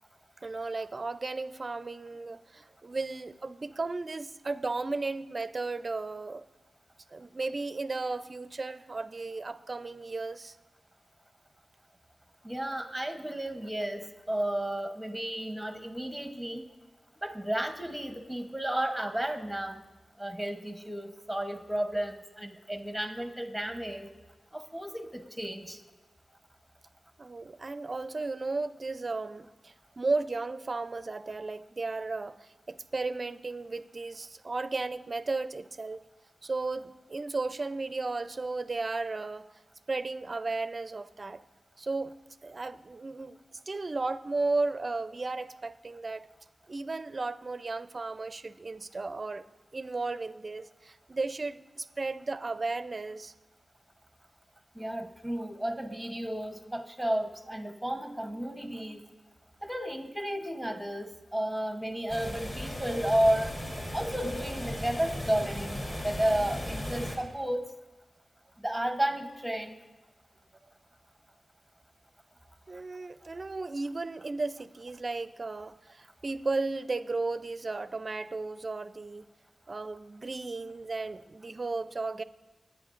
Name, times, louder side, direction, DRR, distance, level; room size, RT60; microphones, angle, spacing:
voice 1, 0.4-6.5 7.1-10.6 27.2-36.0 36.4-39.5 39.9-41.4 41.8-42.1 42.4-43.4 43.7-46.3 46.7-49.5 49.7-53.3 72.7-79.2 79.7-82.2, right 3 dB, 40° right, 0.5 m, -34 dB
voice 2, 12.4-16.7 17.2-19.8 20.2-24.1 24.5-25.8 54.7-59.0 59.6-63.5 63.9-67.8 68.6-69.8, right 1 dB, ahead, 0.9 m, -32 dB
sound 1, 62.1-67.2, left 1 dB, 35° left, 2.9 m, -36 dB
24.5 x 9.6 x 2.5 m
wide cardioid pair, 115°, 0 cm